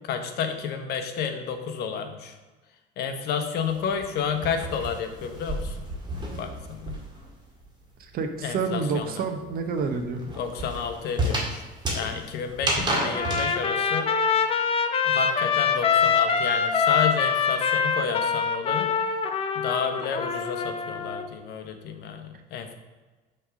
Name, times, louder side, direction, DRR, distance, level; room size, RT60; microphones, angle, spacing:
voice 1, 0.0-2.4 3.0-5.8 6.3-7.0 8.4-9.2 10.4-11.7 11.9-14.1 15.0-18.9 19.5-22.7, left 7 dB, 60° left, 7 dB, 0.9 m, -31 dB
sound 1, 3.6-7.3 7.6-13.5, right 1 dB, 25° right, 1.9 m, -31 dB
voice 2, 8.1-10.2, right 5 dB, 55° right, 6 dB, 0.9 m, -28 dB
Trumpet, 13.1-21.3, left 6 dB, 30° left, 0.6 m, -24 dB
6.3 x 3.5 x 6.0 m, 1.2 s
cardioid pair, 115°, 19 cm